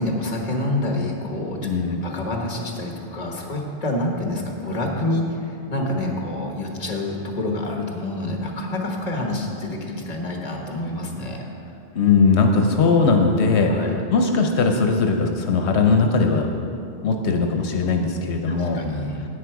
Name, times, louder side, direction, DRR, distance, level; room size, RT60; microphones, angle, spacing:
voice 1, 0.0-1.6 2.0-11.4 13.7-14.0 18.5-19.2, left 1 dB, 40° left, 1 dB, 1.3 m, -27 dB
voice 2, 1.6-2.1 11.9-13.7 14.1-16.5 17.0-18.8, left 4 dB, 80° left, 3 dB, 1.0 m, -19 dB
9.9 x 9.0 x 4.7 m, 2.6 s
omnidirectional pair, 1.1 m